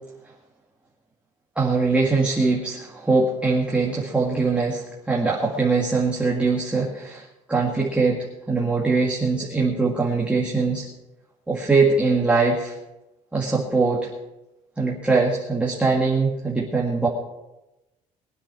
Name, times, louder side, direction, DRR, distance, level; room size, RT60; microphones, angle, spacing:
voice 1, 1.6-8.2 8.5-10.9 11.5-12.7 13.3-14.1 14.8-17.1, right 3 dB, 10° right, -3 dB, 2.0 m, -22 dB
21.5 x 10.0 x 4.8 m, 0.98 s
cardioid pair, 150°, 13 cm